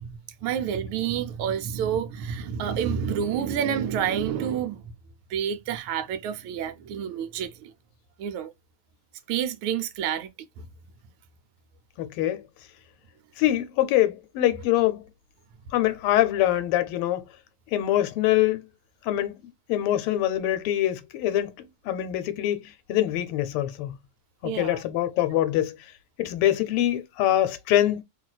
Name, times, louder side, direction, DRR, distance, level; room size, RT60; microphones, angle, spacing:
voice 1, 0.0-4.9 5.3-7.7 8.2-8.5 9.3-10.3 10.6-10.7 24.4-24.8, right 8 dB, 80° right, 1.5 m, -29 dB
voice 2, 12.0-12.4 13.4-15.0 15.7-17.2 17.7-18.7 19.0-19.4 19.7-24.0 24.4-25.8 26.2-28.0, left 13 dB, 85° left, 1.5 m, -24 dB
3.2 x 2.8 x 2.3 m
omnidirectional pair, 2.4 m